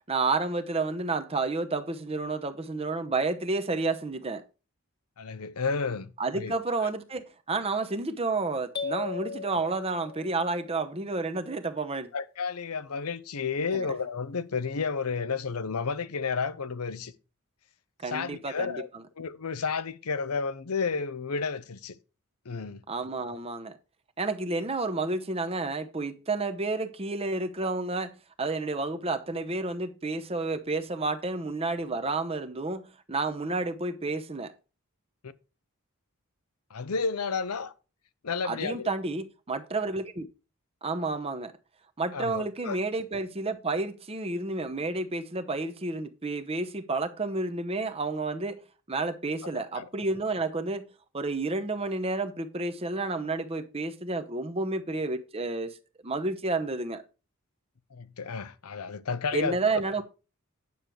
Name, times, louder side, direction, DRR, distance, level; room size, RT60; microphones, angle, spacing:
voice 1, 0.1-4.4 6.2-12.1 13.7-13.9 18.0-19.0 22.9-23.8 24.2-34.5 38.4-40.3 40.8-41.5 42.0-48.6 48.9-50.9 51.1-55.8 56.0-57.0 59.3-60.0, right 3 dB, 25° right, 0.8 m, -30 dB
voice 2, 5.2-6.5 12.1-17.1 18.1-18.9 19.2-22.0 22.5-22.8 35.2-35.3 36.7-37.7 38.2-38.9 42.1-42.8 49.5-49.8 57.9-59.6, left 5 dB, 85° left, 0.7 m, -32 dB
sound 1, 8.8-10.7, left 5 dB, 45° left, 1.0 m, -37 dB
9.5 x 6.7 x 4.5 m
head